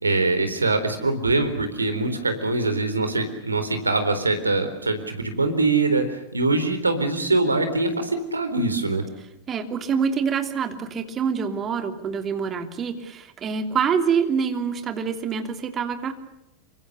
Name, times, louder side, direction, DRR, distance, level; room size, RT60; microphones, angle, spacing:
voice 1, 0.0-9.0, right 3 dB, 80° right, 9 dB, 4.0 m, -23 dB
voice 2, 9.5-16.1, right 6 dB, 25° right, 7 dB, 3.0 m, -26 dB
27.5 x 25.0 x 6.7 m, 0.86 s
figure-of-eight pair, 90°, 0 cm